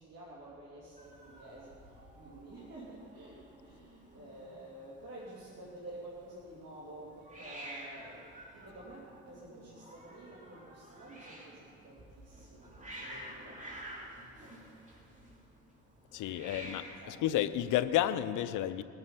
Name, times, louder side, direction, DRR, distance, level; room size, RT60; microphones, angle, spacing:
voice 1, 0.0-13.8 16.4-17.3, right 1 dB, 55° right, -7 dB, 3.0 m, -50 dB
Hiss, 1.0-18.3, right 1 dB, 25° right, 3.0 m, -51 dB
voice 2, 16.1-18.8, left 12 dB, 85° left, 13 dB, 0.6 m, -31 dB
20.5 x 7.9 x 5.6 m, 2.6 s
cardioid pair, 90°, 30 cm